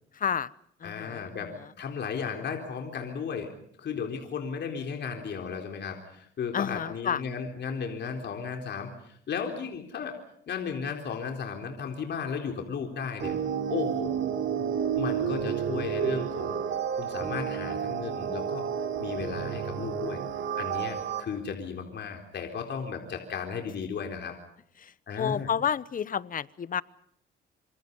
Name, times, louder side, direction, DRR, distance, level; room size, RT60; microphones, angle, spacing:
voice 1, 0.1-0.5 0.8-1.3 6.5-7.2 24.8-26.8, left 8 dB, 45° left, 18 dB, 0.9 m, -30 dB
voice 2, 0.8-3.5 3.8-10.2 10.5-13.3 13.7-14.4 15.0-16.6 16.9-18.7 19.0-20.2 20.5-24.4 25.1-25.5, left 6 dB, 60° left, 3 dB, 4.0 m, -35 dB
sound 1, 13.2-21.2, right 8 dB, 70° right, 4.0 m, -30 dB
26.5 x 26.0 x 5.5 m, 0.70 s
cardioid pair, 90°, 20 cm